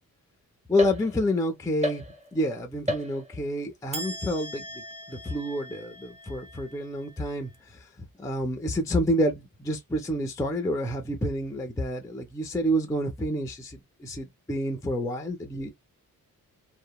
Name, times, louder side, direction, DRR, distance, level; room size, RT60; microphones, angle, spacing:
voice 1, 0.7-2.0 2.3-4.6 5.1-7.8 8.2-15.7, equal, 10° left, 0.3 m, -28 dB
sound 1, 0.8-1.4 1.8-2.5 2.9-3.5 3.9-7.4, left 1 dB, 20° right, 0.6 m, -36 dB
2.8 x 2.1 x 2.3 m
wide cardioid pair, 150°, 34 cm